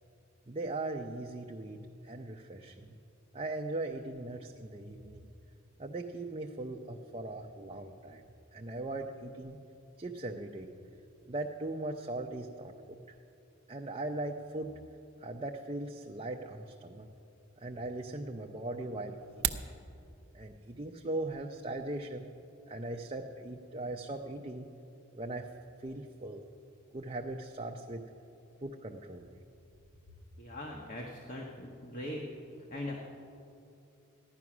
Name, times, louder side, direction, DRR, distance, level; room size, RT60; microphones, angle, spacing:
voice 1, 0.5-3.0 3.3-5.3 5.8-8.2 8.5-9.6 10.0-10.7 11.3-12.7 13.1-13.2 13.7-14.8 15.2-17.1 17.6-19.7 20.3-22.3 22.7-24.7 25.1-25.5 25.8-26.5 26.9-28.1 28.6-29.3, right 2 dB, 25° right, 2 dB, 0.5 m, -39 dB
sound 1, 19.2-19.7, right 10 dB, 75° right, 0.7 m, -33 dB
voice 2, 30.4-32.2 32.7-33.0, left 1 dB, 40° left, -1 dB, 1.2 m, -40 dB
15.0 x 11.0 x 6.1 m, 2.7 s
head